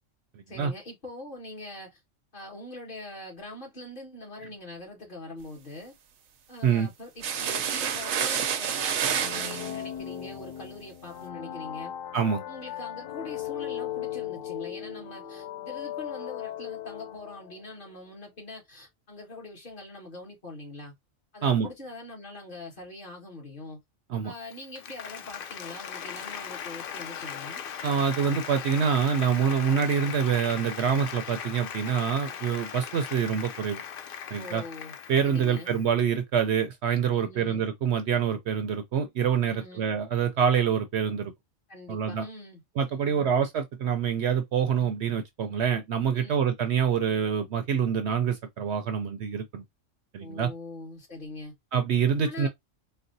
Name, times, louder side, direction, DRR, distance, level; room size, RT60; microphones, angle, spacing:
voice 1, 0.5-2.0 2.3-5.9 6.5-11.9 12.5-20.9 21.3-23.8 24.2-27.6 34.4-34.9 35.2-35.8 37.1-37.6 39.5-39.9 41.7-42.6 42.9-43.3 46.1-46.4 50.2-51.5 52.2-52.5, left 2 dB, 40° left, 1.7 m, -43 dB
sound 1, 7.2-9.8, right 8 dB, 90° right, 1.1 m, -28 dB
sound 2, 9.0-17.7, left 11 dB, 90° left, 1.0 m, -37 dB
voice 2, 12.1-12.4 21.4-21.7 24.1-24.3 27.8-33.8 34.3-34.6 35.1-41.3 41.9-42.2 42.8-49.6 50.1-50.5 51.7-52.5, right 7 dB, 65° right, 0.8 m, -26 dB
Applause, 24.4-35.9, left 8 dB, 60° left, 0.6 m, -39 dB
4.2 x 2.1 x 2.5 m
omnidirectional pair, 1.3 m